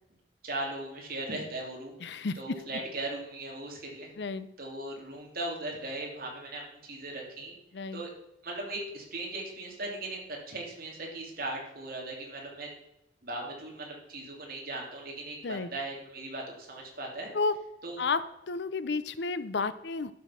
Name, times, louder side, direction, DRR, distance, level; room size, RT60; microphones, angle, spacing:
voice 1, 0.4-4.1 4.6-7.5 7.9-8.1 8.4-12.7 13.2-17.3 17.8-18.0, right 2 dB, 55° right, -1 dB, 2.8 m, -38 dB
voice 2, 2.0-2.6 4.2-4.5 7.7-8.0 15.4-15.7 17.3-17.6 18.0-20.1, left 4 dB, 70° left, 14 dB, 0.6 m, -32 dB
11.5 x 6.3 x 5.8 m, 0.86 s
head